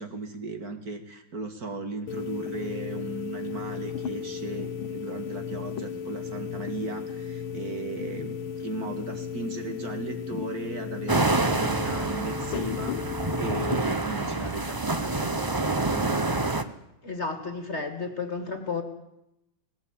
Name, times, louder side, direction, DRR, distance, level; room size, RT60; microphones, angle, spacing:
voice 1, 0.0-16.5, right 3 dB, 50° right, 6 dB, 2.4 m, -36 dB
sound 1, 2.1-13.8, left 7 dB, 85° left, 1.8 m, -35 dB
sound 2, 11.1-16.6, right 2 dB, 30° right, 0.3 m, -27 dB
voice 2, 17.0-18.8, left 4 dB, 35° left, 7 dB, 2.4 m, -32 dB
19.5 x 17.5 x 8.9 m, 0.86 s
omnidirectional pair, 2.2 m